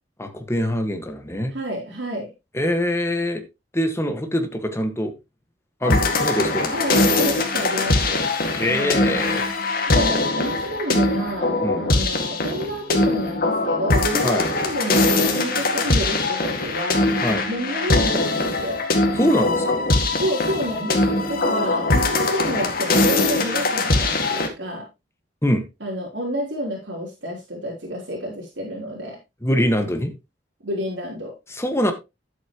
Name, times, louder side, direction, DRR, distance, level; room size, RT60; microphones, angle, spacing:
voice 1, 0.2-1.5 2.5-3.4 3.7-5.1 5.8-6.7 8.5-9.5 11.6-11.8 14.2-14.5 17.2-17.4 19.2-19.8 25.4-25.6 29.4-30.1 31.5-31.9, equal, 15° left, 6 dB, 1.7 m, -23 dB
voice 2, 1.5-2.3 6.7-8.2 8.7-9.3 9.9-17.1 17.5-18.8 20.2-24.9 25.8-29.2 30.6-31.3, equal, 80° right, -3 dB, 3.6 m, -29 dB
sound 1, 5.8-24.5, left 2 dB, 55° left, 2.1 m, -21 dB
12.0 x 8.1 x 3.1 m, 0.25 s
head